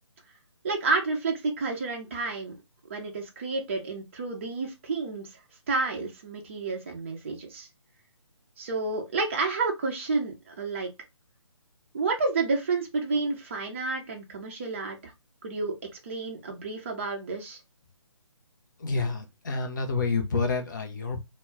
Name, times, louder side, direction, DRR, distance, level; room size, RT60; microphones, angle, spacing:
voice 1, 0.6-2.6 2.9-5.3 5.7-7.7 8.6-10.9 11.9-15.1 15.4-15.8 16.0-17.6, right 3 dB, 25° right, 0.5 m, -30 dB
voice 2, 18.8-21.2, left 4 dB, 40° left, 0.6 m, -28 dB
2.2 x 2.1 x 3.5 m
figure-of-eight pair, 145°, 16 cm